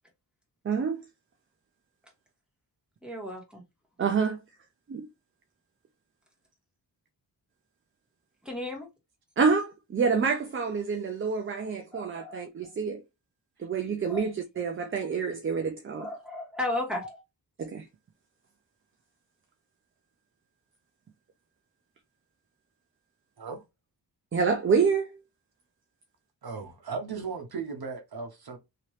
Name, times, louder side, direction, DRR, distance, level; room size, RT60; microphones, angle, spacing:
voice 1, 0.6-1.0 4.0-4.4 4.9-5.1 9.4-13.0 13.6-16.1 17.6-17.9 24.3-25.2, right 5 dB, 30° right, 0.4 m, -27 dB
voice 2, 3.0-3.6 8.4-8.9 11.9-12.2 14.1-14.2 16.0-17.2, left 1 dB, ahead, 1.6 m, -34 dB
voice 3, 26.4-28.6, right 5 dB, 60° right, 1.0 m, -36 dB
2.9 x 2.8 x 3.1 m
wide cardioid pair, 115°, 42 cm